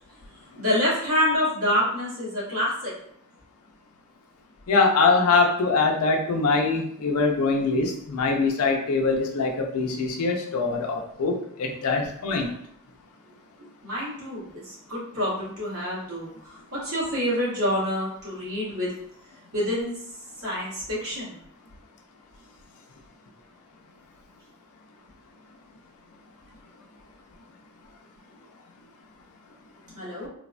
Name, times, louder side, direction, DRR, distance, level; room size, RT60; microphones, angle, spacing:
voice 1, 0.6-2.9 13.6-18.9 19.5-19.9 20.4-21.3 29.9-30.3, left 1 dB, 85° right, -8 dB, 1.5 m, -27 dB
voice 2, 4.7-12.5, left 4 dB, 90° left, 2 dB, 0.5 m, -23 dB
3.3 x 2.1 x 2.4 m, 0.70 s
head